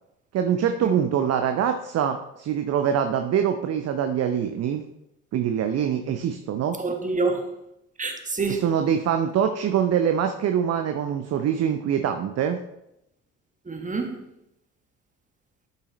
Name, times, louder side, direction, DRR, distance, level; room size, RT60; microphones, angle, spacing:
voice 1, 0.3-4.8 5.3-6.8 8.6-12.6, right 8 dB, 35° right, 0.7 m, -24 dB
voice 2, 6.8-7.5 8.0-8.6 13.6-14.3, right 3 dB, 20° right, 1.5 m, -27 dB
12.0 x 5.5 x 3.2 m
figure-of-eight pair, 50°, 42 cm